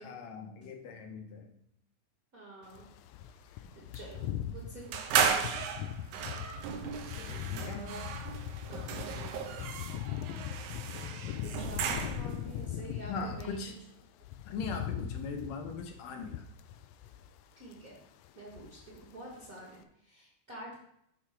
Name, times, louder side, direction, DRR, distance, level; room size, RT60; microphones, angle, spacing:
voice 1, 0.0-1.5 4.4-4.6 7.2-8.0 13.1-13.8 14.5-16.4, left 4 dB, 70° left, 4 dB, 2.0 m, -40 dB
voice 2, 2.3-2.9 3.4-5.4 7.5-8.1 8.7-8.9 11.4-13.7 17.6-18.0 18.3-20.8, right 1 dB, 40° right, -4 dB, 1.4 m, -48 dB
sound 1, 2.7-13.6 14.0-17.4 17.7-17.9 18.2-19.1 19.3-19.5, left 10 dB, 90° left, 1.5 m, -40 dB
sound 2, 4.9-12.4, right 7 dB, 85° right, 2.2 m, -34 dB
6.8 x 4.3 x 5.8 m, 0.74 s
omnidirectional pair, 3.5 m